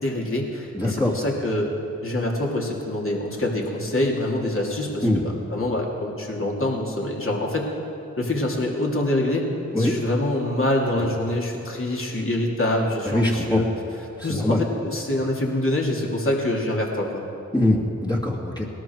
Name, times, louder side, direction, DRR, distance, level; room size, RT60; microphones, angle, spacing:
voice 1, 0.0-1.7 2.0-7.7 8.2-9.5 9.8-13.7 14.2-17.2, left 1 dB, 45° left, -1 dB, 3.1 m, -25 dB
voice 2, 0.7-1.1 5.0-5.2 9.7-9.9 13.0-13.6 14.2-14.6 17.5-18.7, left 1 dB, 15° left, -3 dB, 2.2 m, -22 dB
18.5 x 12.5 x 4.7 m, 2.8 s
cardioid pair, 45°, 31 cm